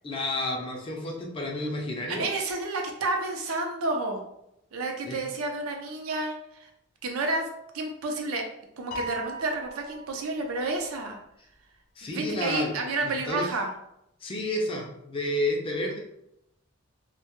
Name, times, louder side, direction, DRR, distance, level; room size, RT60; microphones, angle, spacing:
voice 1, 0.0-2.3 5.1-5.2 12.0-13.5 14.2-16.0, left 1 dB, 25° left, 0 dB, 0.4 m, -31 dB
voice 2, 2.1-4.2 4.7-6.7 7.0-7.5 7.7-8.4 8.8-11.2 12.0-13.7, right 2 dB, 90° right, 2 dB, 0.5 m, -30 dB
Piano, 8.9-10.4, right 2 dB, 85° left, 0.6 m, -38 dB
2.1 x 2.1 x 2.9 m, 0.81 s
head